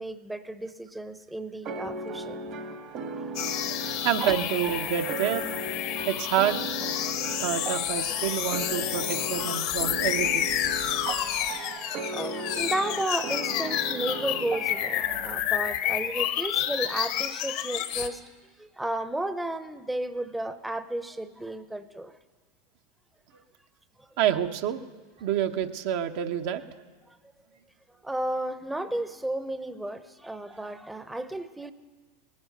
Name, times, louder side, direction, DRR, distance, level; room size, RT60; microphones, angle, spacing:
voice 1, 0.0-2.4 3.1-3.3 3.8-4.0 7.2-7.4 11.4-18.2 18.6-22.2 24.0-24.1 27.1-27.2 28.0-31.7, right 1 dB, 5° right, 11 dB, 0.7 m, -33 dB
sound 1, 1.6-15.4, right 3 dB, 50° right, 1.2 m, -37 dB
sound 2, 3.3-18.1, left 11 dB, 60° left, 1.0 m, -30 dB
voice 2, 4.0-5.6 6.1-6.6 7.4-10.5 24.2-24.8 25.2-26.6, right 10 dB, 65° right, 6 dB, 0.9 m, -28 dB
19.0 x 9.7 x 6.6 m, 1.4 s
hypercardioid pair, 95°, 0 cm